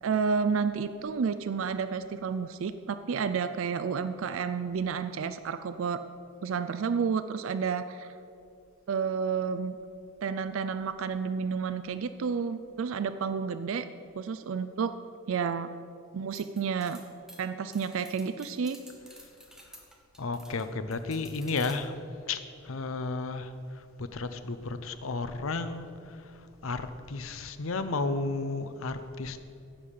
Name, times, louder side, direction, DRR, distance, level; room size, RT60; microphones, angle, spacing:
voice 1, 0.0-6.0 6.4-8.1 8.9-9.8 10.2-13.9 14.2-15.0 15.3-15.7 16.1-17.0 17.4-18.8, right 6 dB, 70° right, 11 dB, 0.4 m, -30 dB
sound 1, 16.3-20.7 20.9-21.7, right 1 dB, 5° right, 1.1 m, -51 dB
voice 2, 20.2-22.0 22.3-29.4, left 3 dB, 75° left, 11 dB, 0.7 m, -33 dB
15.0 x 5.5 x 6.6 m, 2.5 s
head